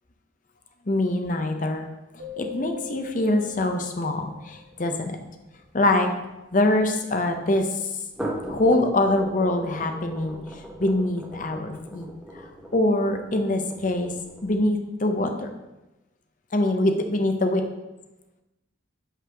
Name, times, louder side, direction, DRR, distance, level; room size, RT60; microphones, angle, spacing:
voice 1, 0.9-1.9 2.4-5.2 5.7-6.1 6.5-7.9 8.5-10.4 10.8-12.1 12.7-14.1 14.4-15.5 16.5-17.6, left 1 dB, 40° left, 6 dB, 0.7 m, -24 dB
Keyboard (musical), 2.2-4.9, left 8 dB, 50° right, 1.5 m, -41 dB
sound 1, 2.3-6.8 8.0-14.7, right 1 dB, 5° right, 0.7 m, -39 dB
5.5 x 4.0 x 6.0 m, 1.0 s
head